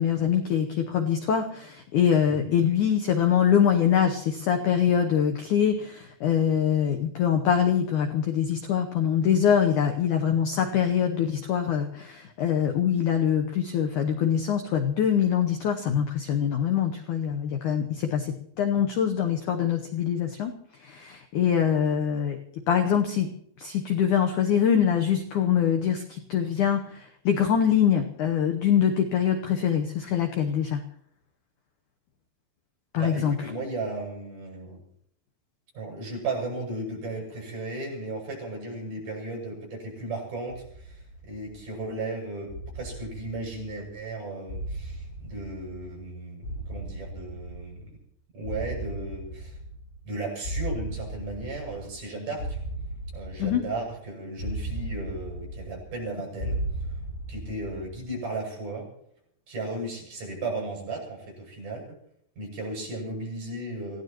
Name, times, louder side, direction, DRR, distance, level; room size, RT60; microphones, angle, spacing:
voice 1, 0.0-20.5 20.8-22.4 22.7-23.3 23.6-30.8 32.9-33.4 53.4-53.6, left 8 dB, 80° left, 5 dB, 1.8 m, -24 dB
voice 2, 33.0-34.8 35.7-47.9 48.3-49.6 50.0-52.6 53.1-57.0 57.3-58.9 59.5-61.8 62.4-64.0, right 2 dB, 45° right, -2 dB, 8.6 m, -35 dB
sound 1, 40.6-41.8 42.5-44.0 44.5-46.1 46.4-48.0 48.4-50.1 50.4-52.1 52.4-54.0 54.4-56.1 56.4-58.0, right 1 dB, 65° left, 5.1 m, -36 dB
27.0 x 16.5 x 3.0 m, 0.69 s
omnidirectional pair, 5.0 m